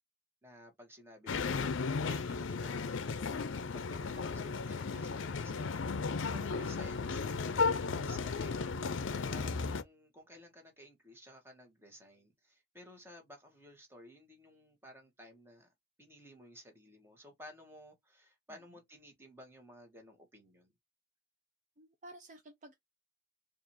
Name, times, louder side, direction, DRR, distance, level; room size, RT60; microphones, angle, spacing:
voice 1, 0.4-3.3 3.7-5.7 6.2-8.7 9.3-15.7 16.0-20.7, equal, 10° right, 1.2 m, -55 dB
sound 1, 1.3-9.8, left 4 dB, 75° left, 0.5 m, -35 dB
voice 2, 5.7-6.2 9.1-9.5 18.5-18.6 21.8-22.7, right 1 dB, 40° right, 0.5 m, -54 dB
4.7 x 2.5 x 2.7 m
head